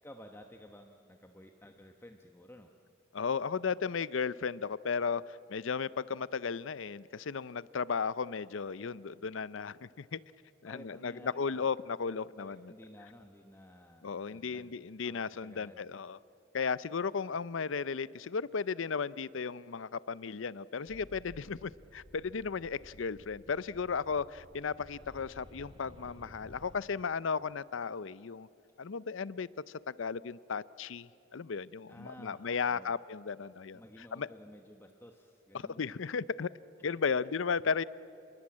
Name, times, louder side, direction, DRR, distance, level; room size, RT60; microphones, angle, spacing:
voice 1, 0.0-2.7 10.6-11.7 12.3-14.8 15.0-15.8 31.9-32.9 33.7-35.8, equal, 10° left, 4 dB, 1.0 m, -54 dB
voice 2, 3.1-10.2 10.6-12.7 14.0-16.2 16.5-28.5 28.8-29.5 29.9-33.8 34.1-34.3 35.5-36.5 36.8-37.8, left 5 dB, 70° left, 19 dB, 0.6 m, -35 dB
sound 1, 20.9-26.8, equal, 25° right, 2.7 m, -55 dB
28.5 x 22.0 x 8.7 m, 2.6 s
head